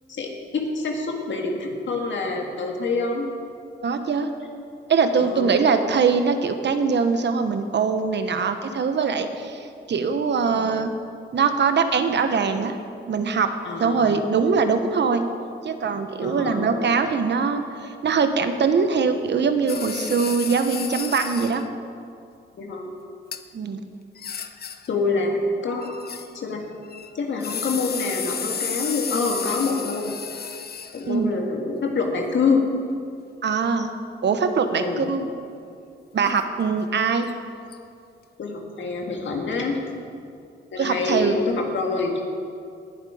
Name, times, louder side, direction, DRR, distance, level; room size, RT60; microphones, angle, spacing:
voice 1, 0.1-3.3 5.2-5.5 13.6-14.0 16.2-16.6 22.6-22.9 24.9-25.4 25.6-25.9 26.3-26.6 27.1-30.1 30.9-32.6 34.7-35.0 38.4-39.8 40.7-42.2, left 4 dB, 70° left, 1 dB, 1.9 m, -26 dB
voice 2, 3.8-4.3 4.9-10.9 11.3-12.8 13.1-13.5 13.8-15.2 15.6-21.6 23.5-23.8 31.1-31.3 33.4-33.9 34.2-35.3 36.1-37.3 40.8-41.4, right 5 dB, 60° right, 8 dB, 1.1 m, -22 dB
sound 1, 19.7-21.7 23.3-23.4 24.2-25.0 25.8-26.5 26.8-31.2 37.3-37.4 37.7-37.8, left 7 dB, 50° left, 0.7 m, -32 dB
19.0 x 7.4 x 5.0 m, 2.4 s
cardioid pair, 70°, 20 cm